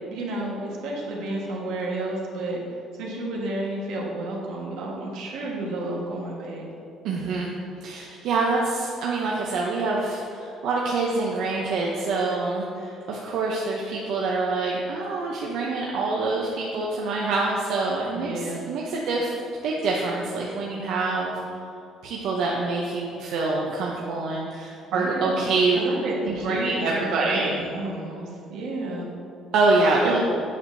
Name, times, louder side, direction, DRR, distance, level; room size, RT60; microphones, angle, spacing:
voice 1, 0.1-2.6 3.0-6.6 18.1-18.6 24.9-25.4 25.7-29.1 30.0-30.2, right 2 dB, 85° right, -2 dB, 1.5 m, -31 dB
voice 2, 7.0-7.5 7.8-19.3 19.6-21.4 22.0-25.8 26.2-27.6 29.5-30.2, right 3 dB, 70° right, -3 dB, 0.7 m, -25 dB
8.5 x 6.4 x 2.7 m, 2.5 s
cardioid pair, 145°, 0 cm